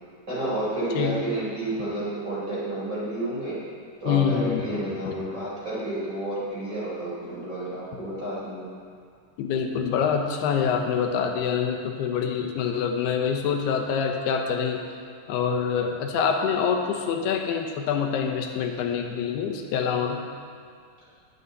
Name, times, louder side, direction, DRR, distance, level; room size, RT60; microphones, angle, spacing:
voice 1, 0.3-3.6 4.0-8.7, right 1 dB, 20° right, -9 dB, 4.2 m, -30 dB
voice 2, 4.1-5.1 9.4-14.8 15.3-20.2, left 7 dB, 80° left, 3 dB, 3.1 m, -26 dB
21.0 x 9.1 x 4.2 m, 2.3 s
omnidirectional pair, 4.6 m